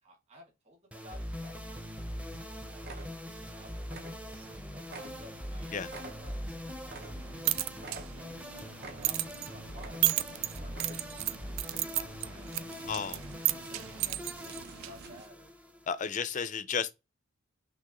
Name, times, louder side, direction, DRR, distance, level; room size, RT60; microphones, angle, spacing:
voice 1, 0.0-1.8 2.1-4.1 4.3-7.1 7.5-10.7 11.1-11.3 11.7-13.0 13.6-15.5, equal, 30° right, 2.1 m, -56 dB
sound 1, 0.9-16.3, equal, 5° right, 0.7 m, -42 dB
sound 2, 1.9-2.0 2.3-2.5 2.8-3.5 3.8-4.6 4.8-7.5 7.8-8.5 8.8-9.4 9.7-10.3 10.7-11.3 11.6-11.8 12.3-15.3, right 3 dB, 50° right, 1.0 m, -50 dB
sound 3, 7.2-15.2, right 16 dB, 75° right, 0.4 m, -35 dB
voice 2, 12.9-13.2 15.9-16.9, left 6 dB, 35° left, 0.4 m, -33 dB
6.0 x 3.0 x 2.9 m
head